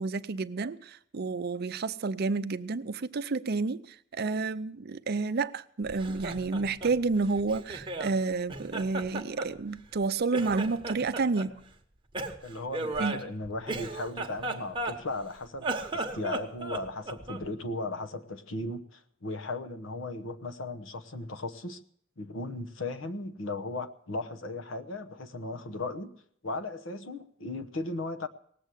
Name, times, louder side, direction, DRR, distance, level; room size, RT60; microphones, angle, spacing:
voice 1, 0.0-11.6 13.0-13.2, right 4 dB, 50° right, 0.5 m, -30 dB
Laughter, 5.9-8.2 8.5-10.0 10.3-11.5 12.1-15.2 15.6-17.5, right 2 dB, 25° right, 1.1 m, -36 dB
voice 2, 12.4-21.8 22.2-26.1 26.4-28.3, left 2 dB, 70° left, 1.0 m, -36 dB
18.5 x 7.7 x 8.3 m
head